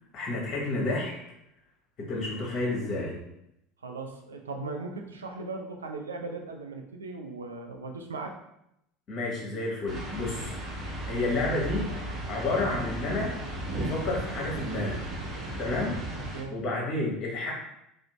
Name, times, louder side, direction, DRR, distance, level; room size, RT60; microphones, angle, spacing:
voice 1, 0.1-1.1 2.0-3.2 9.1-11.8 12.3-13.4 13.7-15.0 15.6-16.0 16.5-17.5, left 2 dB, 40° left, -2 dB, 0.8 m, -30 dB
voice 2, 3.8-8.4 15.8-16.0 16.3-16.6, right 3 dB, 80° right, 3 dB, 0.3 m, -38 dB
sound 1, 9.9-16.4, right 1 dB, 35° right, 0.9 m, -35 dB
2.5 x 2.0 x 2.9 m, 0.80 s
figure-of-eight pair, 70°, 0 cm